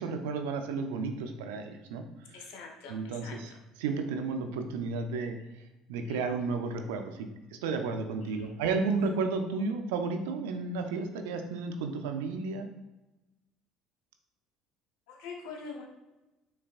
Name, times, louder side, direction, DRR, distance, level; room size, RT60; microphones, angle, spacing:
voice 1, 0.0-2.4 2.9-3.5 3.8-5.4 5.9-7.3 7.6-12.7, right 4 dB, 85° right, 6 dB, 0.5 m, -32 dB
voice 2, 2.3-3.4 6.1-6.2 8.2-8.5 15.1-15.9, left 4 dB, 75° left, 1 dB, 1.0 m, -44 dB
5.5 x 3.4 x 2.4 m, 1.0 s
hypercardioid pair, 70°, 0 cm